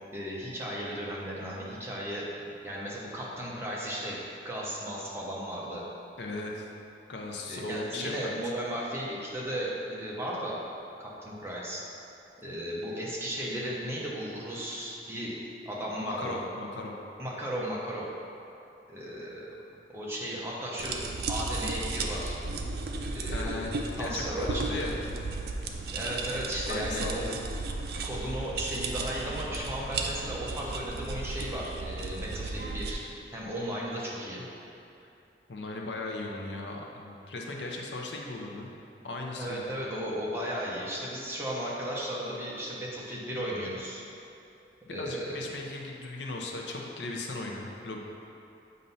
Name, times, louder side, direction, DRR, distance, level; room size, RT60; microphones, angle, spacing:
voice 1, 0.1-2.3 2.6-5.8 7.5-10.6 11.0-11.8 12.4-15.4 15.6-16.4 17.2-18.1 18.9-19.5 19.9-21.0 21.3-22.4 23.1-23.7 24.0-24.9 25.9-27.2 28.0-33.0 33.3-34.4 39.4-44.0 44.9-45.5, equal, 15° right, -5 dB, 0.9 m, -35 dB
voice 2, 6.2-6.7 7.1-8.3 16.0-17.0 23.3-23.7 24.0-25.0 26.6-27.4 35.5-38.7 39.0-39.8 45.0-48.0, left 2 dB, 85° left, 0 dB, 0.7 m, -37 dB
sound 1, 20.8-32.9, right 3 dB, 60° right, 0.5 m, -34 dB
7.5 x 2.7 x 5.5 m, 2.7 s
head